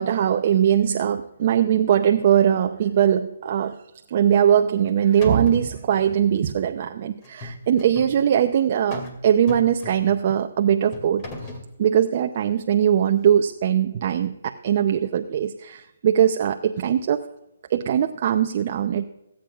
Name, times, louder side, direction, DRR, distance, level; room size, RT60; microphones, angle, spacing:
voice 1, 0.0-3.8 4.1-17.2 17.7-19.0, right 9 dB, 45° right, 6 dB, 0.6 m, -21 dB
sound 1, 4.5-4.9 5.2-5.7 7.2-8.2 8.9-9.2 9.5-10.2 10.9-11.7, left 2 dB, 30° left, 2.3 m, -37 dB
24.5 x 8.7 x 2.4 m, 0.91 s
hypercardioid pair, 155°, 0 cm